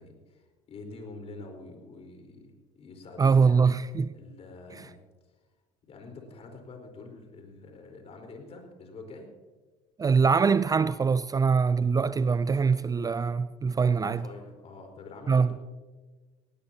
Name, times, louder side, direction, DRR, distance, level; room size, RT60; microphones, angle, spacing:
voice 1, 0.0-3.6 4.1-5.0 5.8-9.3 14.0-15.6, left 3 dB, 45° left, 4.5 m, -46 dB
voice 2, 3.2-4.1 10.0-14.2 15.3-15.5, right 5 dB, 25° right, 0.5 m, -23 dB
18.5 x 18.5 x 2.9 m
hypercardioid pair, 70°, 15 cm